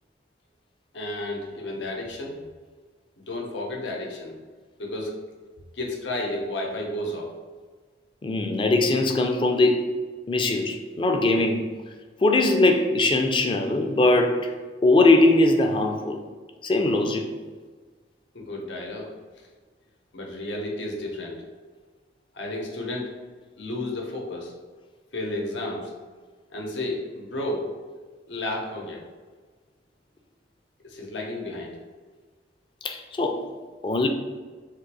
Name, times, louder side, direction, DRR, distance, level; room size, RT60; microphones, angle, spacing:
voice 1, 0.9-2.4 3.2-4.3 4.8-5.2 5.7-7.3 18.3-19.1 20.1-21.4 22.3-23.1 23.6-24.5 25.1-25.9 26.5-27.7 28.3-29.0 30.8-31.8, left 1 dB, 85° left, 0.8 m, -32 dB
voice 2, 8.2-10.0 10.3-11.7 12.2-14.5 14.8-16.2 16.6-17.3 32.8-33.5 33.8-34.1, left 2 dB, 25° left, 0.4 m, -21 dB
3.7 x 2.5 x 4.6 m
head